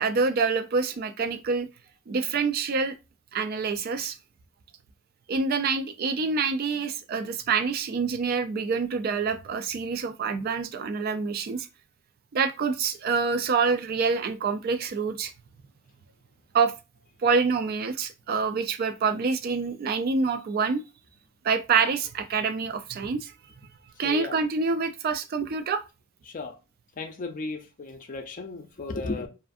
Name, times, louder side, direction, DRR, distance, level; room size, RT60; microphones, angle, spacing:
voice 1, 0.0-1.7 2.1-2.9 3.3-4.2 5.3-11.7 12.3-15.3 16.5-16.7 17.2-20.8 21.4-23.3 24.0-25.8, right 5 dB, 45° right, 0.3 m, -26 dB
voice 2, 27.0-29.3, left 3 dB, 40° left, 0.4 m, -34 dB
2.5 x 2.4 x 2.5 m
head